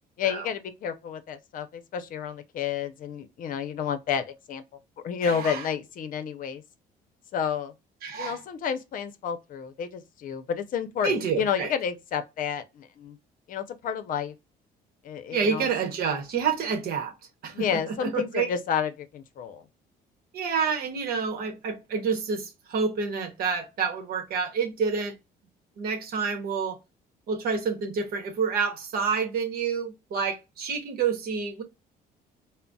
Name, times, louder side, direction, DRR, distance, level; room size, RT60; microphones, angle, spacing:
voice 1, 0.2-4.6 5.0-6.6 7.3-7.7 8.2-13.2 13.5-14.3 15.0-15.7 17.5-19.6, left 7 dB, 55° left, 0.6 m, -30 dB
voice 2, 5.2-5.7 8.0-8.4 11.0-11.7 15.3-17.1 17.4-18.5 20.3-25.1 25.8-26.8 27.3-31.6, right 5 dB, 65° right, 0.9 m, -28 dB
3.8 x 2.0 x 2.2 m
cardioid pair, 110°, 17 cm